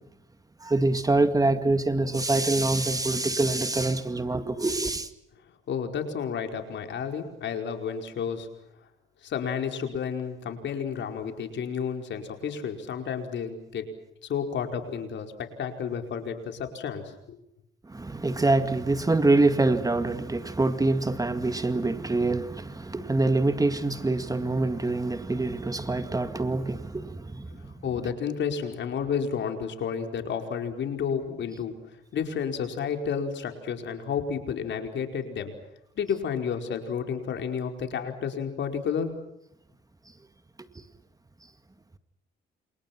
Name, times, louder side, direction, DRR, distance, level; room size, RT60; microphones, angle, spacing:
voice 1, 0.6-5.1 17.9-27.6, right 2 dB, 20° right, 2.0 m, -25 dB
voice 2, 5.7-8.5 9.2-13.9 14.3-17.4 27.8-31.7 32.1-35.5 36.0-39.1, left 7 dB, 65° left, 4.9 m, -31 dB
29.5 x 28.0 x 6.1 m
cardioid pair, 90°, 20 cm